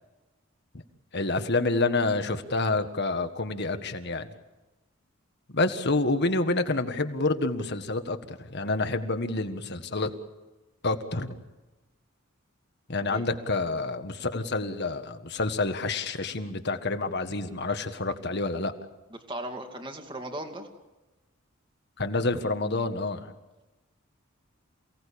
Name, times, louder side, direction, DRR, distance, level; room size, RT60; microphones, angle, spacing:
voice 1, 1.1-4.3 5.5-10.1 10.8-11.4 12.9-18.7 22.0-23.3, left 3 dB, 55° left, 8 dB, 1.7 m, -28 dB
voice 2, 19.3-20.7, right 1 dB, 25° right, 4 dB, 2.4 m, -37 dB
28.5 x 18.0 x 8.6 m, 1.1 s
head